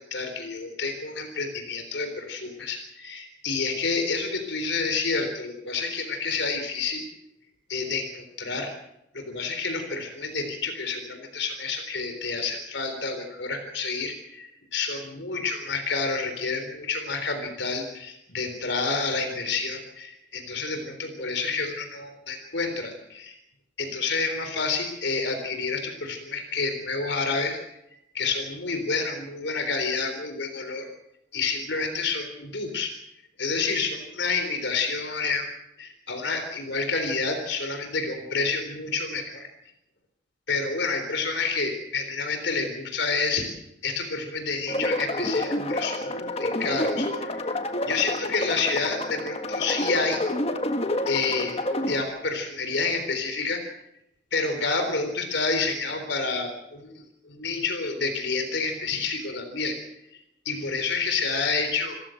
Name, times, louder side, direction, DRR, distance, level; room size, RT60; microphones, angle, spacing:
voice 1, 0.0-7.0 7.7-8.7 9.1-23.4 23.8-27.6 27.9-30.9 31.3-32.9 33.4-35.5 35.8-39.5 40.5-43.5 43.8-47.4 47.9-50.2 51.1-51.5 51.9-53.6 54.3-59.8 60.5-62.0, left 4 dB, 65° left, 6 dB, 3.7 m, -29 dB
sound 1, 44.7-52.0, left 1 dB, 30° left, 1.7 m, -28 dB
26.5 x 14.5 x 7.8 m, 0.84 s
head